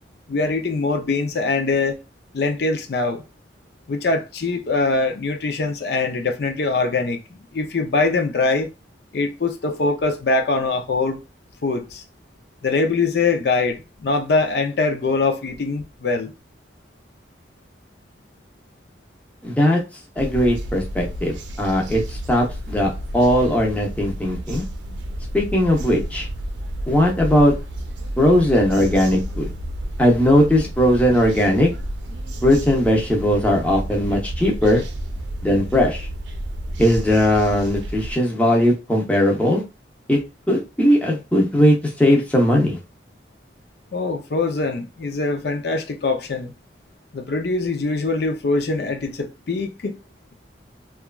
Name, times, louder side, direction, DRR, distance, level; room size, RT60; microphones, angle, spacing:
voice 1, 0.3-2.0 2.3-3.2 3.9-7.2 7.5-8.7 9.1-11.2 11.6-12.0 12.6-16.3 43.9-46.5 47.1-50.0, left 3 dB, 65° left, 0.4 m, -23 dB
voice 2, 19.4-19.8 20.2-24.6 25.3-26.3 26.9-27.5 28.2-29.5 30.0-31.7 32.4-34.8 35.4-36.1 36.8-39.6 40.1-40.2 40.5-42.8, equal, 10° left, 0.6 m, -18 dB
sound 1, 20.2-38.1, right 1 dB, 85° right, 0.5 m, -31 dB
3.0 x 2.3 x 2.2 m
head